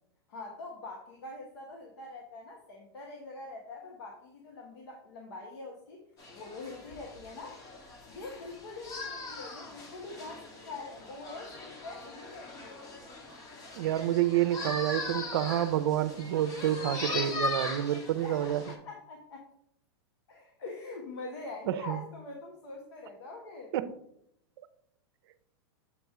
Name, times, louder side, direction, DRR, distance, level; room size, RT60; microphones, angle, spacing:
voice 1, 0.3-6.0 6.3-7.6 8.1-12.8 18.2-19.4 20.3-23.7, left 3 dB, 85° left, 0 dB, 1.2 m, -44 dB
sound 1, 6.2-18.7, left 2 dB, 25° left, 1.1 m, -40 dB
voice 2, 13.7-18.6 21.7-22.0 23.7-23.9, right 12 dB, 70° right, 12 dB, 0.6 m, -28 dB
7.1 x 3.0 x 4.7 m, 0.74 s
supercardioid pair, 140°, 14 cm